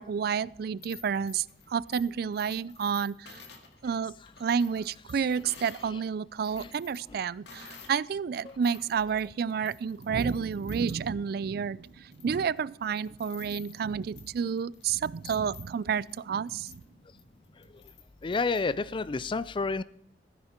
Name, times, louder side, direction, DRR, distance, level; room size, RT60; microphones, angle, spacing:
voice 1, 0.0-3.4 3.8-4.1 4.4-16.8, right 6 dB, 60° right, 0.4 m, -30 dB
sound 1, 0.7-5.9 6.3-8.0 8.4-18.6, left 6 dB, 70° left, 2.1 m, -53 dB
voice 2, 18.2-19.8, left 4 dB, 30° left, 0.4 m, -30 dB
15.0 x 10.0 x 4.4 m
head